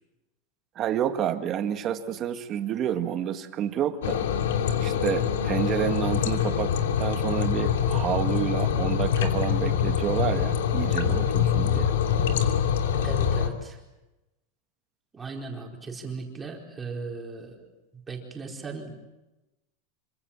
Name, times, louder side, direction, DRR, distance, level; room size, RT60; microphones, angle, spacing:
voice 1, 0.8-4.2 4.8-6.7 7.0-11.9, right 10 dB, 30° right, 7 dB, 2.0 m, -29 dB
sound 1, 4.0-13.5, left 8 dB, 85° left, 2.9 m, -25 dB
voice 2, 13.0-13.8 15.1-18.9, right 4 dB, 10° right, 0 dB, 4.6 m, -37 dB
26.5 x 25.0 x 7.4 m, 1.0 s
supercardioid pair, 155°, 0 cm